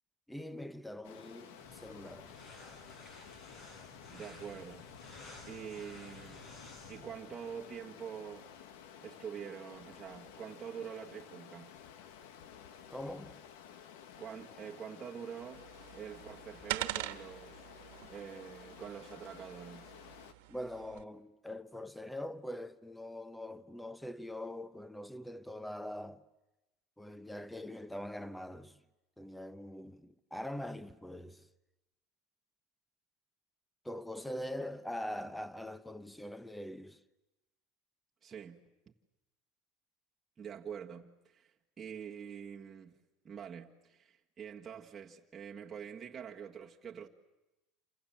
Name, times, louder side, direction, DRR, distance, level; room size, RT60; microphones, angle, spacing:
voice 1, 0.3-2.4 12.9-13.5 20.5-26.2 27.0-28.8 29.2-31.5 33.8-37.0, left 1 dB, 5° left, 0.9 m, -43 dB
Stream, 1.0-20.3, left 8 dB, 80° left, 1.7 m, -53 dB
sound 1, 1.6-7.2, left 2 dB, 40° left, 7.3 m, -54 dB
voice 2, 4.1-4.9 5.5-6.5 6.9-8.5 9.0-11.8 14.2-15.6 15.9-17.7 18.1-19.9 38.2-38.7 40.4-47.1, right 7 dB, 20° right, 1.7 m, -46 dB
sound 2, 15.5-21.0, right 17 dB, 80° right, 1.4 m, -44 dB
28.0 x 26.5 x 7.5 m
supercardioid pair, 130°, 0 cm